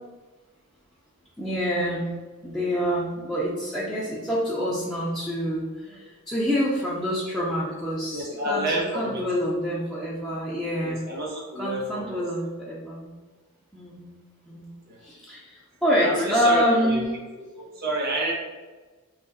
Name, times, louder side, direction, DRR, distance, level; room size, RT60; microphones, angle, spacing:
voice 1, 1.4-2.1 2.4-11.1 11.6-13.1 13.7-14.1 14.5-14.7 15.0-17.1, equal, ahead, -9 dB, 0.5 m, -27 dB
voice 2, 8.1-9.3 10.8-12.2 14.9-15.0 16.0-17.0 17.5-18.3, right 1 dB, 45° right, -2 dB, 0.9 m, -29 dB
3.0 x 2.4 x 3.8 m, 1.3 s
head